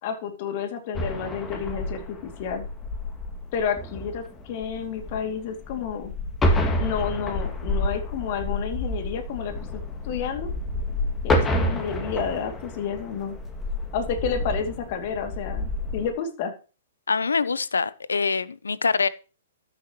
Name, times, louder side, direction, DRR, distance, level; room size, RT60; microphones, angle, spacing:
voice 1, 0.0-2.7 3.5-6.1 6.8-10.5 11.2-13.3 13.9-16.5, left 7 dB, 50° left, 2.6 m, -30 dB
sound 1, 0.9-16.1, left 1 dB, 15° left, 2.2 m, -29 dB
voice 2, 17.1-19.1, left 5 dB, 85° left, 0.7 m, -24 dB
13.0 x 9.0 x 3.1 m
hypercardioid pair, 120°, 0 cm